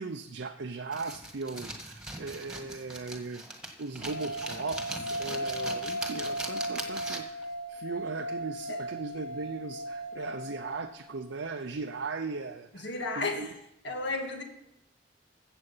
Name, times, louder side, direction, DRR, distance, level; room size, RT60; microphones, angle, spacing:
voice 1, 0.0-3.4 3.8-13.5, right 4 dB, 90° right, 6 dB, 0.6 m, -38 dB
sound 1, 0.9-7.4, right 1 dB, 5° right, 1.6 m, -40 dB
sound 2, 4.0-11.1, equal, 30° left, 3.1 m, -37 dB
voice 2, 12.8-13.5 13.8-14.4, left 3 dB, 70° left, 4 dB, 2.0 m, -33 dB
14.5 x 7.9 x 5.5 m, 0.83 s
head